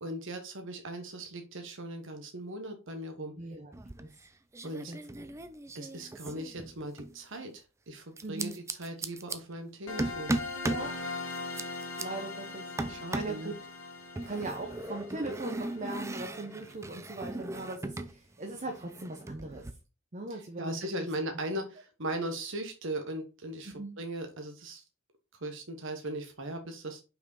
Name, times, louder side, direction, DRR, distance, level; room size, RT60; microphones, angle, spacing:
voice 1, 0.0-3.3 4.6-4.9 5.7-10.3 12.9-13.5 20.6-24.8 25.4-27.0, right 1 dB, 65° right, 5 dB, 1.1 m, -38 dB
voice 2, 3.4-3.7 4.0-4.1 4.6-5.3 8.2-8.5 10.6-11.0 12.0-13.6 14.2-19.6 20.1-21.1 23.6-23.9, right 2 dB, 35° right, 2 dB, 0.9 m, -39 dB
sound 1, 3.7-4.3 4.5-7.2 8.2-9.4 10.0-10.9 11.3-12.0 12.8-13.4 14.2-18.2 18.4-19.7, right 2 dB, 15° right, 0.5 m, -37 dB
sound 2, 9.9-16.5, left 3 dB, 80° left, 2.2 m, -41 dB
5.6 x 4.7 x 4.0 m, 0.31 s
head